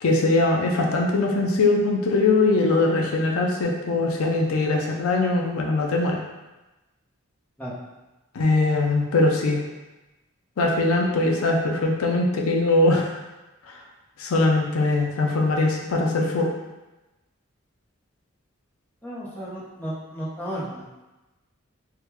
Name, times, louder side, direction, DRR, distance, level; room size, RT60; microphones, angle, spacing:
voice 1, 0.0-6.2 8.3-9.6 10.6-13.1 14.2-16.5, left 2 dB, 90° left, 1 dB, 0.5 m, -21 dB
voice 2, 19.0-20.9, equal, 10° left, -9 dB, 0.7 m, -33 dB
3.5 x 2.2 x 2.9 m, 1.1 s
head